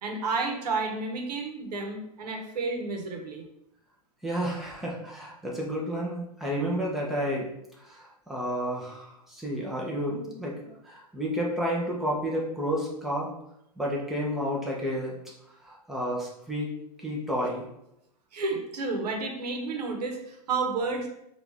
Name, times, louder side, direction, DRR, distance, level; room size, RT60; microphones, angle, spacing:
voice 1, 0.0-3.4 18.3-21.1, right 3 dB, 85° right, 3 dB, 1.0 m, -31 dB
voice 2, 4.2-7.5 7.8-13.3 13.8-15.2 15.6-16.7 17.0-17.6, equal, ahead, -4 dB, 0.8 m, -31 dB
4.5 x 2.6 x 3.4 m, 0.81 s
hypercardioid pair, 140°, 20 cm